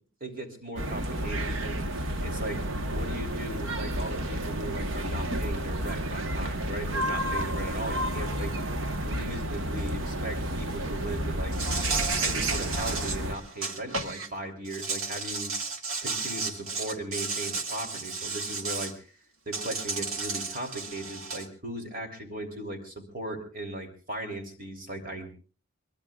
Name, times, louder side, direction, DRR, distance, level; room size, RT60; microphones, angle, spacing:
voice 1, 0.2-1.8 2.2-2.6 2.9-8.5 9.0-11.5 12.2-15.5 16.0-19.1 19.4-25.3, right 1 dB, 40° right, 4 dB, 3.2 m, -37 dB
sound 1, 0.8-13.4, right 1 dB, 65° right, 1.2 m, -31 dB
Insect, 11.5-14.3 14.6-18.9 19.5-21.5, right 4 dB, 85° right, 2.1 m, -33 dB
24.0 x 22.0 x 2.4 m, 0.36 s
head